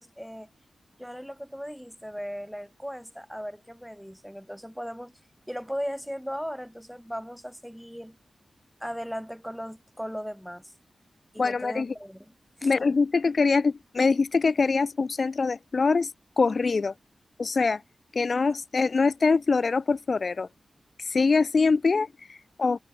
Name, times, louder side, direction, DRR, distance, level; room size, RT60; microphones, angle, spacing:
voice 1, 0.2-0.5 1.0-5.1 5.5-8.2 8.8-10.7 11.3-12.3 12.6-12.7, equal, ahead, 5.0 m, -37 dB
voice 2, 11.4-11.9 12.6-16.9 17.4-17.8 18.1-20.5 21.0-22.8, left 4 dB, 50° left, 1.6 m, -24 dB
wide cardioid pair, 105°, 0 cm